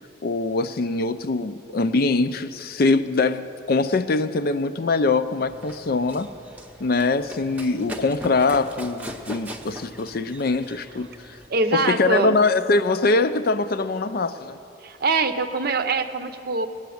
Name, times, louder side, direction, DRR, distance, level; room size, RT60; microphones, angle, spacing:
voice 1, 0.2-6.3 6.8-11.1 11.7-14.6, left 3 dB, 50° left, 11 dB, 0.4 m, -23 dB
Run, 5.4-11.5, equal, 5° right, 0.7 m, -40 dB
voice 2, 11.5-12.4 14.8-16.7, right 3 dB, 50° right, 9 dB, 0.7 m, -23 dB
19.5 x 7.0 x 9.3 m, 2.8 s
head